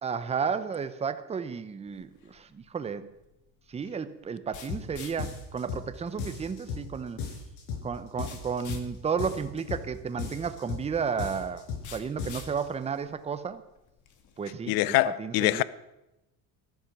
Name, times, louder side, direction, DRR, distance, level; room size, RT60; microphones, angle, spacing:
voice 1, 0.0-3.1 3.7-7.2 7.8-11.7 11.9-13.6 14.4-15.6, right 6 dB, 15° right, 0.7 m, -33 dB
sound 1, 1.9-14.5, left 7 dB, 50° left, 2.0 m, -52 dB
sound 2, 4.7-4.9 5.2-5.9 6.2-6.9 7.2-7.9 8.2-8.9 9.2-9.9 10.2-10.9 11.2-11.9 12.2-12.6, left 5 dB, 85° left, 5.5 m, -36 dB
voice 2, 14.7-15.6, left 17 dB, 65° left, 0.7 m, -24 dB
14.5 x 12.0 x 6.0 m
cardioid pair, 155°, 39 cm